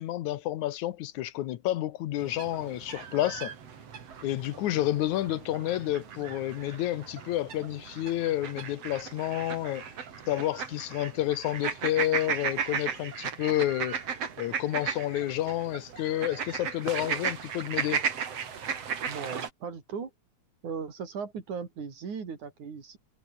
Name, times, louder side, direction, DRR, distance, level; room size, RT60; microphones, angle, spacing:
voice 1, 0.0-3.5 4.2-9.8 10.3-18.0, left 14 dB, 80° left, 2.5 m, -30 dB
sound 1, 2.2-19.5, right 7 dB, 55° right, 3.5 m, -36 dB
voice 2, 19.1-20.1 20.6-23.0, right 6 dB, 85° right, 5.4 m, -37 dB
omnidirectional pair, 3.3 m